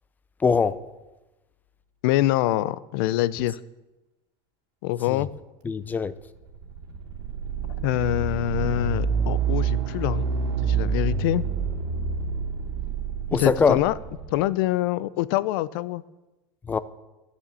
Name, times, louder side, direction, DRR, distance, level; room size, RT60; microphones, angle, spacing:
voice 1, 0.4-0.8 5.1-5.2 5.6-6.1 13.3-13.8 16.7-16.8, left 5 dB, 15° left, 0.4 m, -22 dB
voice 2, 2.0-3.6 4.8-5.3 7.8-10.2 10.6-11.4 13.4-13.9 14.3-16.0, left 15 dB, 75° left, 0.5 m, -25 dB
sound 1, 6.3-14.4, right 5 dB, 80° right, 2.6 m, -27 dB
12.0 x 7.1 x 8.3 m
supercardioid pair, 145°, 12 cm